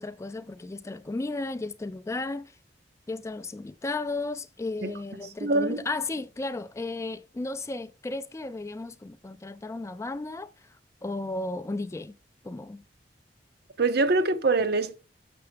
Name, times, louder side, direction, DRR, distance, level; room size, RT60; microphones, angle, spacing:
voice 1, 0.0-2.5 3.1-10.5 11.0-12.2 12.4-12.8, left 2 dB, 15° left, 0.3 m, -34 dB
voice 2, 5.4-5.8 13.8-15.0, right 3 dB, 65° right, 0.7 m, -24 dB
6.8 x 6.6 x 3.4 m
head